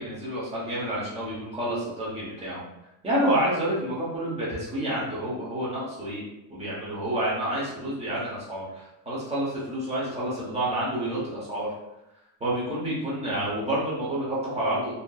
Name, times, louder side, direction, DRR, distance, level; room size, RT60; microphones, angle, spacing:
voice 1, 0.0-2.6 3.0-6.2 6.5-11.7 12.4-15.0, right 1 dB, 15° right, -7 dB, 0.8 m, -29 dB
2.7 x 2.5 x 2.3 m, 0.92 s
cardioid pair, 155°, 44 cm